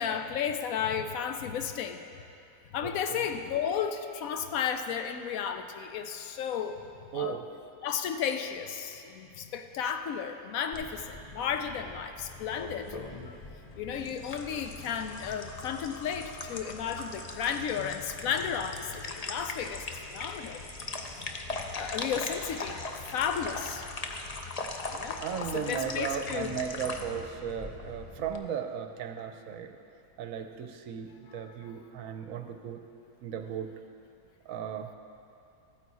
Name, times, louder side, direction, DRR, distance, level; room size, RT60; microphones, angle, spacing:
voice 1, 0.0-2.0 2.7-6.8 7.1-7.4 7.8-12.9 13.2-13.4 13.8-20.6 21.2-21.3 21.7-23.8 24.9-26.5 31.3-31.8, left 7 dB, 70° left, 7 dB, 1.0 m, -33 dB
voice 2, 2.8-3.2 7.1-7.4 25.2-29.8 30.2-32.8 33.2-33.7 34.5-34.9, right 8 dB, 70° right, 6 dB, 1.0 m, -36 dB
sound 1, 10.7-28.4, left 3 dB, 45° left, 0.5 m, -40 dB
14.0 x 9.3 x 4.1 m, 2.6 s
omnidirectional pair, 1.6 m